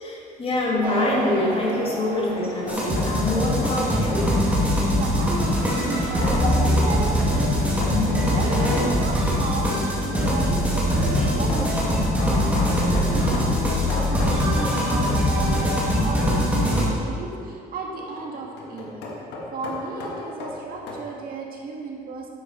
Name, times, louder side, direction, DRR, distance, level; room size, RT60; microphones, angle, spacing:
voice 1, 0.0-4.4 6.4-6.6 7.9-8.4, left 2 dB, 35° left, -2 dB, 2.1 m, -26 dB
sound 1, 0.8-9.1, right 2 dB, 45° right, 2.1 m, -35 dB
sound 2, 2.3-3.9 6.2-6.4 7.8-8.1 9.4-15.3 15.5-15.8 17.9-21.0, left 2 dB, 90° left, 1.7 m, -35 dB
sound 3, 2.7-16.9, equal, 10° right, 2.4 m, -22 dB
voice 2, 4.9-7.6 8.3-12.1 12.3-15.6 16.0-19.0 19.5-22.3, right 3 dB, 60° right, 0 dB, 1.6 m, -34 dB
10.0 x 7.6 x 4.3 m, 2.4 s
cardioid pair, 110°, 17 cm